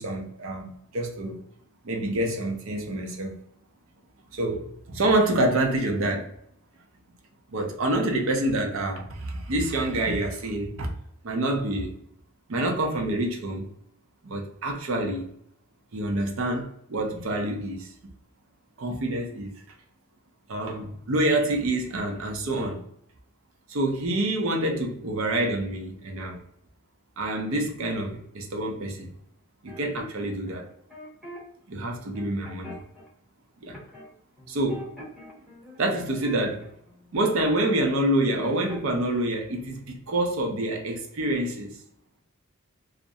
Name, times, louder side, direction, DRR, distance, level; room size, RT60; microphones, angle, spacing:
voice 1, 0.0-1.4 1.8-3.4 4.3-6.3 7.5-10.9 11.2-11.9 12.5-13.7 14.2-15.3 15.9-17.9 18.8-19.5 20.5-22.8 23.7-26.4 27.2-29.1 29.6-30.7 31.7-32.8 33.6-33.8 34.5-34.9 35.8-36.7 37.1-41.8, right 1 dB, 65° right, 0.5 m, -27 dB
sound 1, 29.7-31.4 31.8-33.1 33.7-34.1 34.4-37.8 38.1-39.0, equal, ahead, 0.8 m, -44 dB
2.4 x 2.0 x 2.6 m
head